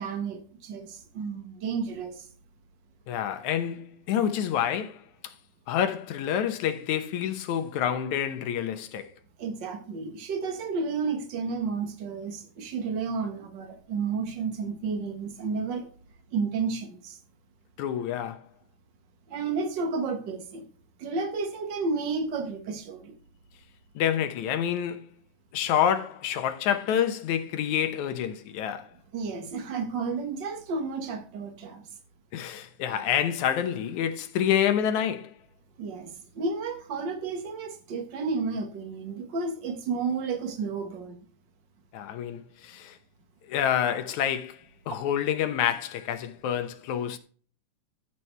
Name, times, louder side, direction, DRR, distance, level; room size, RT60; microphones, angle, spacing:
voice 1, 0.0-2.3 9.4-15.9 16.3-17.2 19.3-20.7 21.0-23.1 29.1-31.8 35.8-41.2, right 4 dB, 45° right, 1.9 m, -32 dB
voice 2, 3.1-5.3 5.7-9.1 17.8-18.4 24.0-25.0 25.5-28.9 32.3-35.3 41.9-43.0 43.5-44.6 44.9-47.2, left 9 dB, 75° left, 2.3 m, -28 dB
14.0 x 6.1 x 3.3 m
omnidirectional pair, 3.5 m